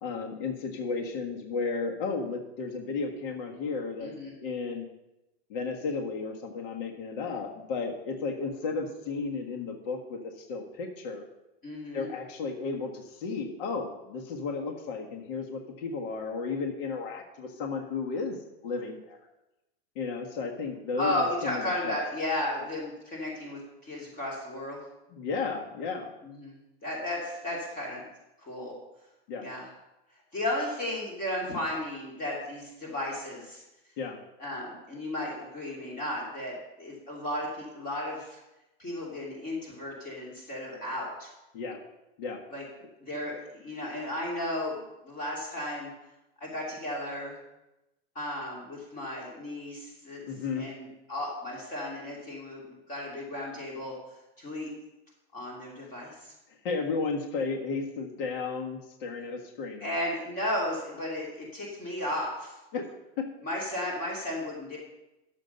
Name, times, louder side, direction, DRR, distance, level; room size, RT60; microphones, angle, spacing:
voice 1, 0.0-4.1 4.4-4.9 5.5-11.2 11.9-18.4 18.6-19.2 20.0-22.0 25.1-26.1 29.3-29.5 34.0-34.2 41.5-41.8 42.2-42.4 50.3-50.7 56.6-60.0 62.7-62.8 63.2-63.3, left 4 dB, 55° left, 1 dB, 1.7 m, -33 dB
voice 2, 4.0-4.3 11.6-12.1 21.0-24.8 26.2-26.5 26.8-28.1 28.4-28.7 29.4-29.7 30.3-33.6 34.4-38.4 38.8-41.3 42.5-42.6 43.0-45.9 46.4-47.4 48.1-50.3 50.6-53.9 54.4-54.7 55.3-56.3 59.8-62.6 63.4-64.8, left 1 dB, 25° left, -3 dB, 2.8 m, -34 dB
11.0 x 7.6 x 5.4 m, 0.95 s
supercardioid pair, 155°, 32 cm